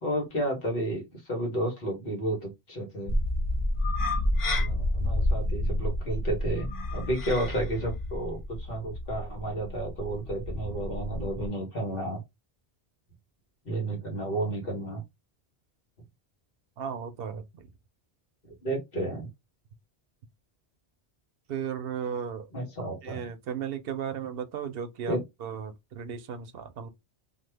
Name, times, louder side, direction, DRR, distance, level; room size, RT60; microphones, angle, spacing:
voice 1, 0.0-3.2 4.6-12.2 13.6-15.0 18.6-19.3 22.5-23.2 25.1-25.2, right 1 dB, 65° left, 1.4 m, -32 dB
sound 1, 3.1-11.5, left 1 dB, 40° left, 0.5 m, -30 dB
voice 2, 16.8-17.7 21.5-22.5 23.0-26.9, right 7 dB, 70° right, 0.8 m, -35 dB
2.9 x 2.2 x 3.3 m
omnidirectional pair, 1.1 m